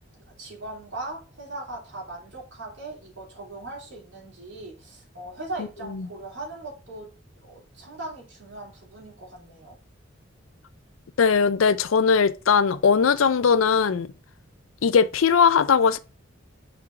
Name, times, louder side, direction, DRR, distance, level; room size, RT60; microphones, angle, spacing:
voice 1, 0.4-7.1 7.4-9.8, right 2 dB, 65° right, 3.4 m, -39 dB
voice 2, 11.2-14.1 14.8-16.0, left 6 dB, 90° left, 0.5 m, -19 dB
6.0 x 4.4 x 3.7 m
head